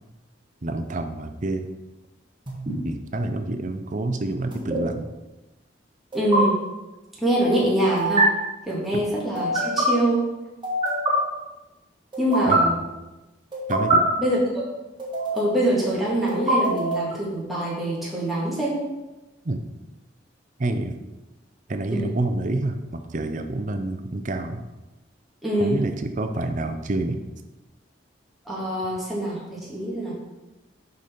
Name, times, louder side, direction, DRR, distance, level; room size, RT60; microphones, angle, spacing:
voice 1, 0.6-1.7 2.8-5.1 8.9-9.0 12.5-12.8 13.7-14.0 19.4-19.6 20.6-21.0 21.7-24.6 25.6-27.2, right 2 dB, 40° right, 7 dB, 0.6 m, -28 dB
sound 1, 2.5-2.7 4.5-4.8 6.1-6.4 8.0-8.2 9.3-9.9 10.6-11.1 12.1-12.6 13.5-14.0 15.0-15.6 16.3-17.1, right 2 dB, 25° right, 1.4 m, -24 dB
voice 2, 6.1-6.6 7.2-8.3 8.7-10.2 12.2-12.7 14.2-14.6 15.3-18.8 21.9-22.1 25.4-25.7 28.5-30.1, right 1 dB, ahead, -7 dB, 1.9 m, -24 dB
6.7 x 5.1 x 4.4 m, 1.1 s
head